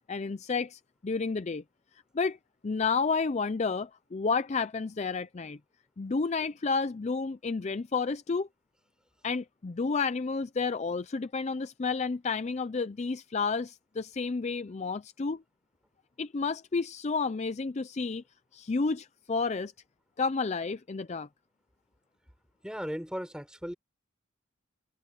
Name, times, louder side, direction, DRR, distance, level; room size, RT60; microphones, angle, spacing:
voice 1, 0.1-1.6 2.1-2.4 2.6-5.6 6.0-8.5 9.2-15.4 16.2-18.2 18.5-19.7 20.2-21.3, left 4 dB, 35° left, 0.4 m, -31 dB
voice 2, 22.6-23.7, equal, 5° right, 5.3 m, -36 dB
head